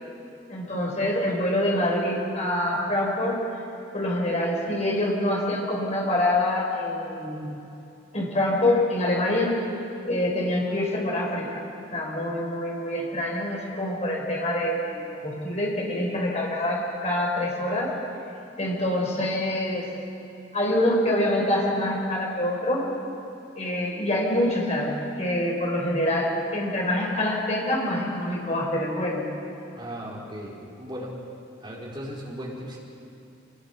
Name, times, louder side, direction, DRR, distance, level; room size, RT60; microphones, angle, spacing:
voice 1, 0.5-3.4 3.9-7.5 8.1-9.6 10.0-11.6 11.9-17.9 18.6-19.9 20.5-22.9 23.6-29.3, left 1 dB, 40° left, -2 dB, 5.4 m, -25 dB
voice 2, 29.7-31.2 31.6-32.8, equal, 25° right, -5 dB, 4.8 m, -37 dB
26.5 x 20.0 x 6.2 m, 2.8 s
head